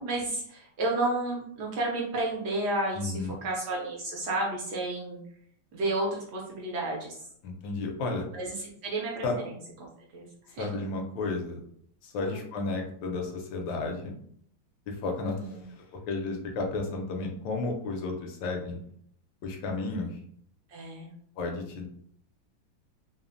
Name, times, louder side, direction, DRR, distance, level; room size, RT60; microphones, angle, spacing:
voice 1, 0.0-5.2 5.7-7.3 8.3-9.4 10.1-10.9 12.2-12.5 15.2-15.6 20.7-21.1, right 2 dB, 70° right, -2 dB, 1.0 m, -32 dB
voice 2, 2.9-3.3 7.4-8.3 9.2-9.4 10.6-11.6 12.0-14.1 14.9-15.4 15.9-18.8 19.4-20.2 21.4-21.9, left 3 dB, 80° left, 2 dB, 1.2 m, -32 dB
3.2 x 2.0 x 2.5 m, 0.65 s
omnidirectional pair, 2.1 m